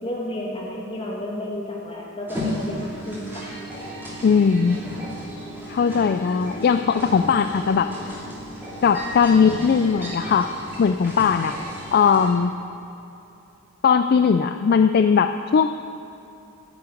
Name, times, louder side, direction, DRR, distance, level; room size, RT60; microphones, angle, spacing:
voice 1, 0.0-3.6, left 1 dB, 25° left, -3 dB, 2.4 m, -32 dB
sound 1, 2.3-12.3, equal, 10° right, 3.0 m, -34 dB
voice 2, 4.2-4.8 5.7-7.9 8.8-11.5 11.9-12.6 13.8-15.7, left 6 dB, 45° left, 9 dB, 0.3 m, -19 dB
11.0 x 7.8 x 9.5 m, 2.9 s
head